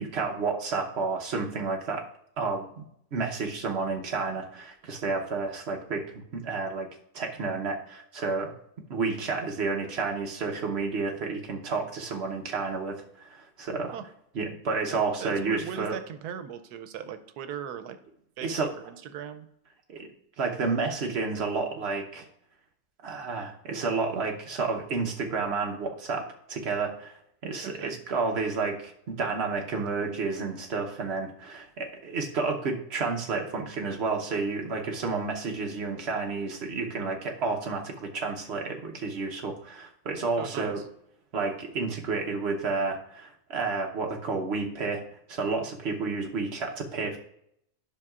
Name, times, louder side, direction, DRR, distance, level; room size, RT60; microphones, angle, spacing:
voice 1, 0.0-2.0 2.4-2.8 3.1-6.9 7.1-8.5 8.9-13.9 14.3-15.9 18.4-18.7 19.9-20.1 20.4-22.3 23.0-27.2 27.4-40.8 41.3-45.0 45.3-47.2, right 4 dB, 50° right, 2 dB, 1.0 m, -30 dB
voice 2, 15.2-18.0 18.4-19.5 27.6-27.9 40.4-40.8, right 8 dB, 90° right, 11 dB, 1.2 m, -39 dB
10.5 x 6.2 x 2.4 m, 0.73 s
omnidirectional pair, 1.7 m